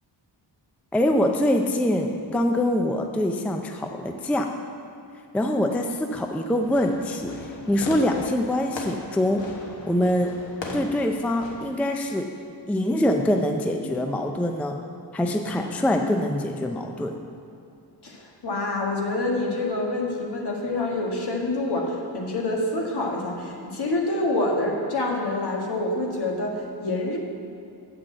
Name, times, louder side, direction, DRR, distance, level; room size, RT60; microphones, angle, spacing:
voice 1, 0.9-4.5 5.3-10.3 10.7-12.3 12.7-14.8 15.1-17.2, left 1 dB, 5° left, 4 dB, 0.4 m, -24 dB
Fireworks, 6.6-11.8, left 3 dB, 80° left, 1.4 m, -38 dB
voice 2, 18.0-27.2, left 2 dB, 60° left, -1 dB, 1.6 m, -27 dB
8.4 x 6.1 x 7.6 m, 2.7 s
wide cardioid pair, 180°, 44 cm